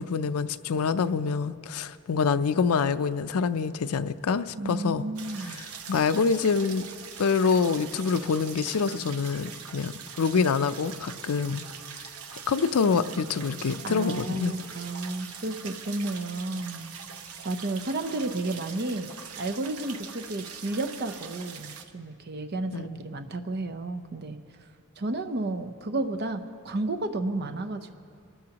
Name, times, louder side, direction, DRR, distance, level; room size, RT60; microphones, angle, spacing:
voice 1, 0.0-5.1 5.5-6.8 7.2-11.6 12.5-14.6 22.7-22.9, left 5 dB, 85° left, 13 dB, 0.5 m, -26 dB
voice 2, 4.6-5.6 13.8-16.9 17.4-19.1 19.4-24.4 25.0-27.9, right 2 dB, 50° right, 7 dB, 0.7 m, -32 dB
Water well, 5.2-21.9, right 7 dB, 90° right, 0.9 m, -42 dB
25.5 x 13.5 x 2.9 m, 2.3 s
head